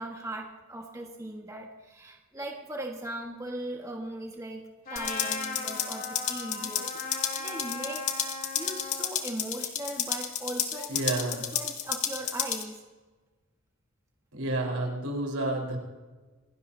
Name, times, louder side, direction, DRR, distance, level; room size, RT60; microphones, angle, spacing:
voice 1, 0.0-8.1 8.5-11.0 11.4-12.8, right 1 dB, 15° right, 0 dB, 1.6 m, -39 dB
sound 1, 3.8-4.3 6.4-7.0 9.3-9.4 10.7-11.3, left 4 dB, 85° left, 1.9 m, -49 dB
Trumpet, 4.9-9.1, left 3 dB, 40° left, 2.8 m, -38 dB
sound 2, 5.0-12.6, left 9 dB, 70° left, 2.0 m, -32 dB
voice 2, 10.9-11.4 14.3-15.8, right 2 dB, 85° right, 0 dB, 4.6 m, -30 dB
28.0 x 16.5 x 2.8 m, 1.3 s
head